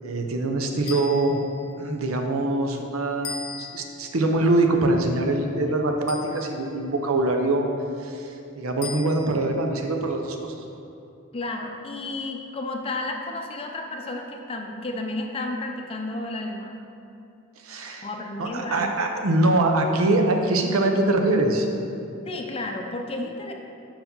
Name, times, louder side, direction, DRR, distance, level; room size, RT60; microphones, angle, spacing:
voice 1, 0.0-1.4 1.8-7.7 8.0-10.6 17.6-18.1 18.4-21.7, right 2 dB, 80° right, 3 dB, 0.7 m, -23 dB
sound 1, 0.8-1.7 3.2-4.1 6.1-6.8 8.8-9.5, left 6 dB, 85° left, 0.7 m, -38 dB
voice 2, 11.3-16.7 18.0-18.9 22.2-23.5, left 2 dB, 25° left, 2 dB, 0.5 m, -32 dB
5.8 x 4.7 x 5.3 m, 2.7 s
head